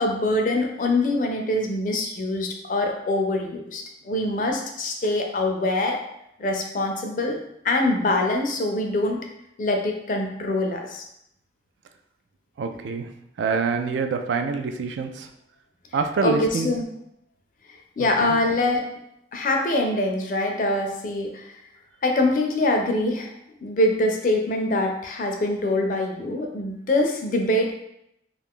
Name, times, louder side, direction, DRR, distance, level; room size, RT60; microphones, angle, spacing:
voice 1, 0.0-6.0 6.4-7.4 7.6-9.2 9.6-11.0 16.2-16.8 18.0-18.8 19.3-21.5 22.0-23.3 23.6-27.7, left 2 dB, 45° left, 2 dB, 0.4 m, -24 dB
voice 2, 12.6-13.1 13.4-15.3 15.9-16.7 18.0-18.4, right 4 dB, 85° right, 6 dB, 0.3 m, -26 dB
2.5 x 2.3 x 3.6 m, 0.79 s
head